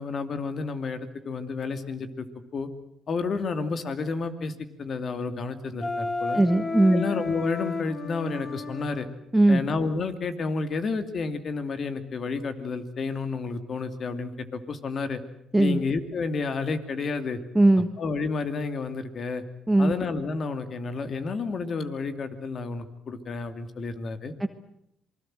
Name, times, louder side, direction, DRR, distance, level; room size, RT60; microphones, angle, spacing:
voice 1, 0.0-2.3 2.5-2.7 3.1-4.5 4.8-6.4 6.9-9.1 9.5-15.2 15.6-17.4 18.0-19.4 19.8-24.3, left 4 dB, 55° left, 9 dB, 2.7 m, -30 dB
Wind instrument woodwind instrument, 5.8-9.1, left 3 dB, 35° left, 3.0 m, -32 dB
voice 2, 6.3-7.0 9.3-9.6 15.5-15.8 17.5-17.9 19.7-19.9 24.4-24.5, right 2 dB, 10° right, 8 dB, 1.5 m, -19 dB
27.0 x 21.0 x 7.7 m, 0.77 s
supercardioid pair, 65°, 0 cm